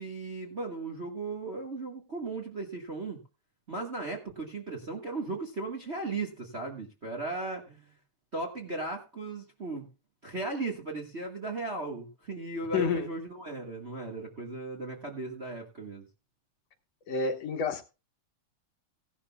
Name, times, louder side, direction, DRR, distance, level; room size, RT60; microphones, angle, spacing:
voice 1, 0.0-3.2 3.7-7.9 8.3-9.9 10.2-16.0, right 3 dB, 30° right, 1 dB, 1.3 m, -36 dB
voice 2, 12.7-13.1 17.1-17.8, left 5 dB, 65° left, 5 dB, 2.3 m, -29 dB
17.0 x 11.5 x 2.3 m, 0.28 s
omnidirectional pair, 3.3 m